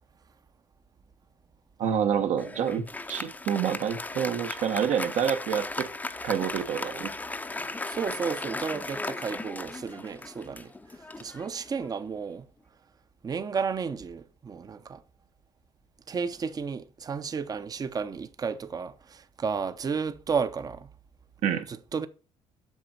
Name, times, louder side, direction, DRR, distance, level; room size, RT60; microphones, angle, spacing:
voice 1, 1.8-2.8 3.1-5.9 6.2-7.1 21.4-21.6, right 8 dB, 70° right, 1.4 m, -27 dB
Applause, 2.4-12.2, left 2 dB, 15° left, 0.6 m, -36 dB
voice 2, 7.9-10.7 11.2-12.5 13.2-15.0 16.1-20.9 21.4-22.1, right 5 dB, 30° right, 0.7 m, -32 dB
8.2 x 6.1 x 4.4 m
cardioid pair, 115°, 12 cm